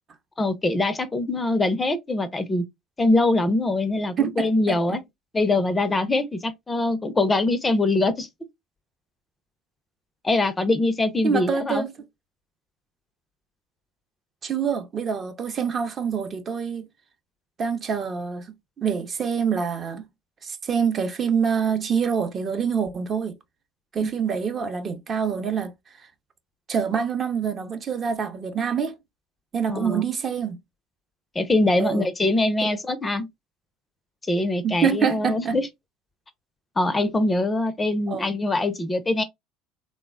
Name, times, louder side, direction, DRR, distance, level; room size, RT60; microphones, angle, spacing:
voice 1, 0.4-2.6 3.0-5.0 5.3-8.3 10.2-11.8 24.0-24.1 29.7-30.0 31.4-33.3 34.3-35.7 36.8-39.2, left 2 dB, 20° left, 0.4 m, -23 dB
voice 2, 4.2-5.0 11.2-11.9 14.4-16.9 17.6-18.4 18.8-20.0 20.4-23.3 23.9-25.7 26.7-28.9 29.5-30.6 31.8-32.1 32.6-32.7 34.6-35.6 38.1-38.3, right 6 dB, 35° right, 0.5 m, -26 dB
3.2 x 2.0 x 2.3 m
figure-of-eight pair, 65°, 0 cm